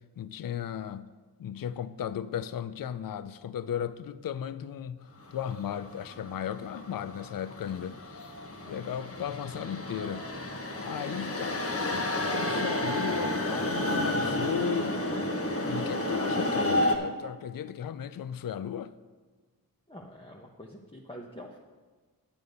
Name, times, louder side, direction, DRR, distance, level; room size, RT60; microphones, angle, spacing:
voice 1, 0.2-1.1 1.4-8.3 8.7-10.3 10.8-15.0 15.6-18.9, left 9 dB, 65° left, 0.5 m, -36 dB
sound 1, 5.3-17.0, left 1 dB, 40° left, 1.2 m, -31 dB
voice 2, 19.9-21.6, equal, 15° left, 0.9 m, -46 dB
9.6 x 8.7 x 5.3 m
wide cardioid pair, 75°, 36 cm